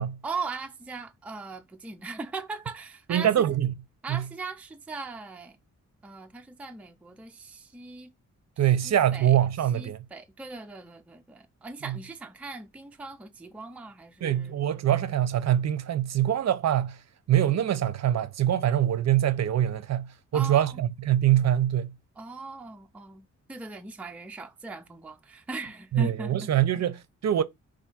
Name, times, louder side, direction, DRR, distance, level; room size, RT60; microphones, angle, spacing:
voice 1, 0.2-3.5 4.0-5.6 6.0-8.1 8.8-14.6 20.3-20.8 22.2-26.5, right 3 dB, 5° right, 0.3 m, -39 dB
voice 2, 3.1-3.7 4.1-4.2 8.6-10.0 11.9-12.0 14.2-17.0 17.3-21.9 25.9-27.4, right 11 dB, 60° right, 0.5 m, -24 dB
4.5 x 2.5 x 4.2 m
wide cardioid pair, 170°, 30 cm